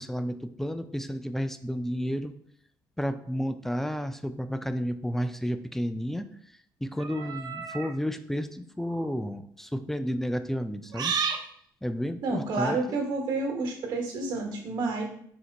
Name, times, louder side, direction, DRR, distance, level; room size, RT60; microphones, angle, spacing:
voice 1, 0.0-2.3 3.0-6.3 6.8-11.2 11.8-13.0, equal, 5° left, 10 dB, 0.4 m, -31 dB
sound 1, 7.0-7.9 8.8-9.1 10.9-11.5, right 5 dB, 55° right, 0.5 m, -32 dB
voice 2, 12.2-15.0, right 3 dB, 75° right, 1 dB, 1.1 m, -29 dB
4.4 x 2.1 x 3.9 m, 0.65 s
supercardioid pair, 65°, 8 cm